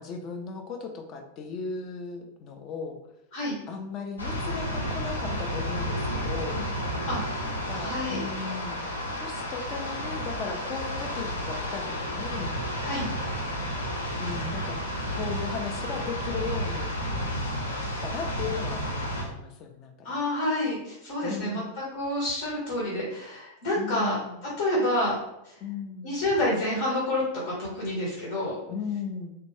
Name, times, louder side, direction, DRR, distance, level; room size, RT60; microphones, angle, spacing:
voice 1, 0.0-3.0 3.7-6.6 7.4-8.8 9.2-12.5 14.2-14.8 15.1-16.9 17.6-20.2 21.2-21.7 23.8-24.4 25.6-26.2 28.7-29.3, left 5 dB, 35° left, 5 dB, 0.5 m, -36 dB
sound 1, 4.2-19.2, equal, 75° left, 0.7 m, -31 dB
voice 2, 7.8-8.2 12.8-13.1 20.0-21.6 21.9-24.2 24.6-25.1 25.4-25.5 26.0-28.5, left 1 dB, 55° left, -4 dB, 1.1 m, -28 dB
3.3 x 2.5 x 3.2 m, 0.83 s
figure-of-eight pair, 90°, 0 cm